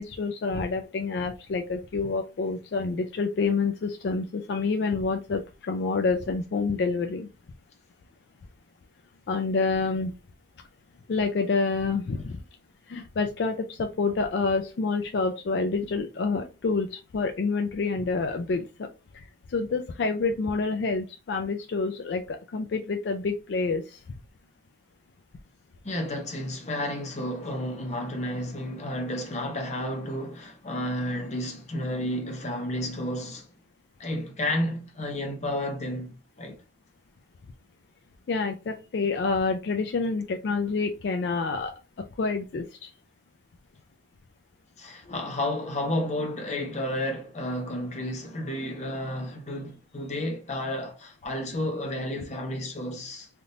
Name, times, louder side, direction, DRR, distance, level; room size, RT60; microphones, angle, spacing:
voice 1, 0.0-7.3 9.3-10.1 11.1-12.4 12.9-18.9 19.1-24.2 38.3-42.9, left 4 dB, 70° left, 0.4 m, -28 dB
voice 2, 25.8-33.5 34.0-36.5 44.8-53.3, left 1 dB, 40° left, 0.8 m, -31 dB
3.5 x 2.5 x 2.7 m
head